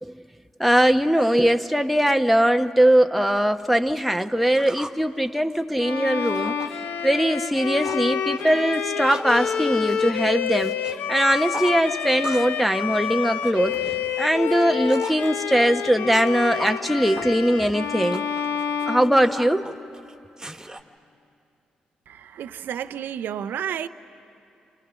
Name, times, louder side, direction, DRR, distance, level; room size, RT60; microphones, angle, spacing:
voice 1, 0.6-6.5 7.0-10.8 11.1-13.8 14.2-18.2 18.9-19.7, equal, ahead, 5 dB, 1.0 m, -21 dB
sound 1, 2.9-3.0 3.4-5.0 5.4-6.8 7.0-7.3 7.5-8.1 8.4-11.0 11.2-12.6 12.9-15.3 15.8-20.8, right 1 dB, 15° right, 1.8 m, -39 dB
Bowed string instrument, 5.8-19.9, left 7 dB, 75° left, 0.9 m, -28 dB
voice 2, 22.1-23.9, right 9 dB, 70° right, 12 dB, 0.7 m, -31 dB
29.5 x 27.0 x 6.3 m, 2.6 s
hypercardioid pair, 45°, 3 cm